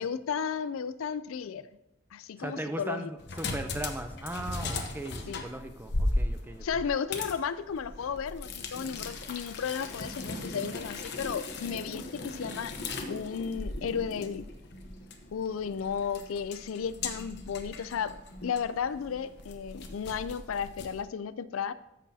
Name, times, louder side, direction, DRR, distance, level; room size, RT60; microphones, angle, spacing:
voice 1, 0.0-1.7 2.1-3.1 5.3-5.4 6.6-12.7 13.1-14.5 15.3-21.7, left 7 dB, 90° left, 15 dB, 0.4 m, -34 dB
voice 2, 2.4-6.8, right 1 dB, 10° right, 7 dB, 0.5 m, -38 dB
sound 1, 3.2-21.0, left 2 dB, 55° left, 1.0 m, -37 dB
13.5 x 6.2 x 2.8 m, 0.91 s
head